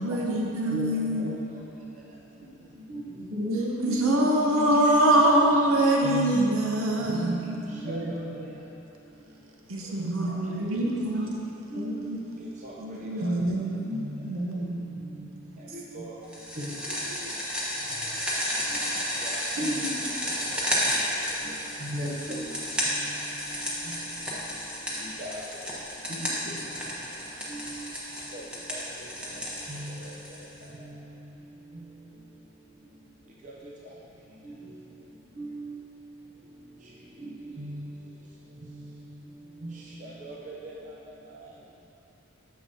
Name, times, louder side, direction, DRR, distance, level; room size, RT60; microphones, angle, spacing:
voice 1, 0.0-1.3 3.8-7.8 9.7-11.4 12.8-13.6, right 1 dB, 80° right, -1 dB, 0.7 m, -24 dB
voice 2, 0.7-1.4 2.9-3.0 3.3-3.7 4.0-4.9 6.3-6.6 7.1-7.4 7.8-8.5 10.0-11.1 11.4-12.2 13.2-15.5 16.6-17.3 17.8-18.1 19.6-20.1 21.9-22.5 26.1-26.7, right 1 dB, 55° right, -3 dB, 1.0 m, -33 dB
voice 3, 2.9-3.3 3.8-4.3 5.0-5.3 5.7-6.5 6.9-8.4 11.7-12.2 12.6-12.7 13.0-13.3 13.9-14.3 15.1-15.3 15.7-16.2 19.2-19.9 21.4-22.2 23.0-23.1 23.9-24.1 25.0-25.4 27.5-27.9 28.3-28.4 28.7-28.8 29.3-29.4 29.7-30.1 30.8-31.0 33.4-33.5 35.4-35.8 37.2-38.0 38.7-39.0 39.6-40.7, right 1 dB, 35° right, -4 dB, 0.6 m, -39 dB
sound 1, 16.3-30.6, equal, 5° right, 1.0 m, -32 dB
9.4 x 6.6 x 2.8 m, 2.9 s
head